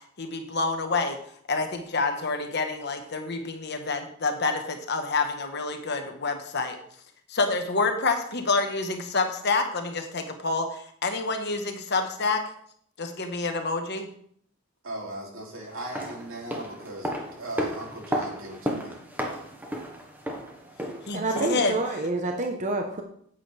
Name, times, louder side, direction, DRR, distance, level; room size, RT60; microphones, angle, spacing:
voice 1, 0.2-1.2 1.5-6.8 7.3-12.4 13.0-14.1 21.1-21.7, left 3 dB, 55° left, 5 dB, 1.2 m, -28 dB
voice 2, 14.8-17.1 17.4-19.0, right 1 dB, 80° right, -1 dB, 2.9 m, -37 dB
sound 1, 15.7-21.7 22.0-22.1, equal, 10° right, 1.3 m, -34 dB
voice 3, 21.1-23.0, right 2 dB, 35° right, 3 dB, 0.9 m, -28 dB
9.9 x 8.6 x 3.4 m, 0.64 s
head